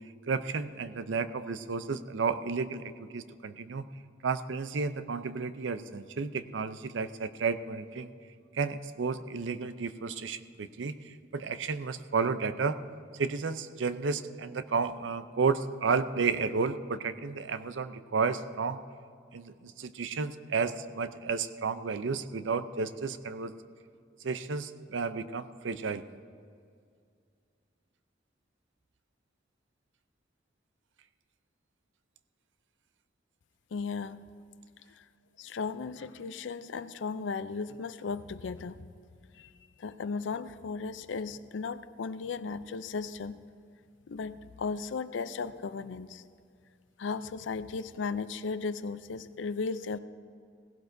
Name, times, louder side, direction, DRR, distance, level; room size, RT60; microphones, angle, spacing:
voice 1, 0.3-3.9 4.2-8.1 8.5-12.8 13.2-18.8 19.3-23.5 24.2-26.0, right 5 dB, 90° right, 11 dB, 0.5 m, -32 dB
voice 2, 33.7-34.2 34.9-35.0 35.4-38.8 39.3-39.5 39.8-43.4 44.1-46.2 47.0-50.0, left 4 dB, 85° left, 14 dB, 0.4 m, -36 dB
17.0 x 16.0 x 2.6 m, 2.3 s
head